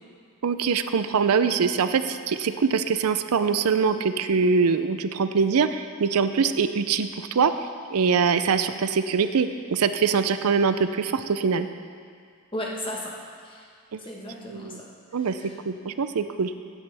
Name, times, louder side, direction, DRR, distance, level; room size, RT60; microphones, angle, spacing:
voice 1, 0.4-7.5 7.9-11.7 13.9-14.0 14.5-14.8 15.1-15.4 15.7-16.5, right 5 dB, 85° right, 10 dB, 0.5 m, -23 dB
voice 2, 12.5-13.2 13.4-13.7 14.0-14.9 15.2-15.6, left 1 dB, 25° left, -2 dB, 1.3 m, -35 dB
15.5 x 9.9 x 3.5 m, 2.1 s
head